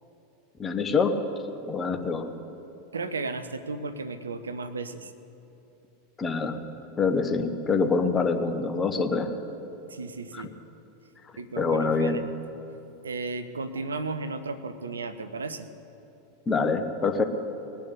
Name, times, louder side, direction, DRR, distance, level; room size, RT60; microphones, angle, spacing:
voice 1, 0.6-1.1 1.6-2.3 6.2-6.6 7.0-9.3 10.3-10.4 11.6-12.2 16.5-17.2, left 4 dB, 20° left, 7 dB, 1.1 m, -25 dB
voice 2, 2.9-5.1 9.9-10.5 11.4-12.2 13.0-15.7, right 3 dB, 75° right, 11 dB, 0.7 m, -34 dB
20.0 x 6.9 x 8.7 m, 3.0 s
figure-of-eight pair, 85°, 0 cm